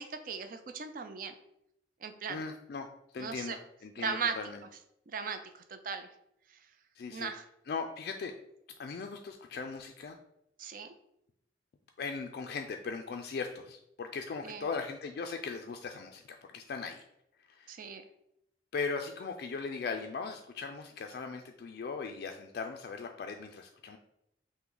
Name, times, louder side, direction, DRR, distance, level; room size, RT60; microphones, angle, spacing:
voice 1, 0.0-1.3 2.0-2.4 3.2-3.6 4.0-4.4 5.1-6.1 7.1-7.4 10.6-10.9 14.4-14.7 17.7-18.0, right 5 dB, 50° right, 8 dB, 0.4 m, -37 dB
voice 2, 2.3-2.9 3.1-4.6 7.0-7.3 7.7-8.3 8.8-10.2 12.0-16.2 16.5-17.0 17.5-17.7 18.7-24.0, left 4 dB, 60° left, 4 dB, 0.3 m, -39 dB
5.7 x 2.1 x 3.8 m, 0.79 s
head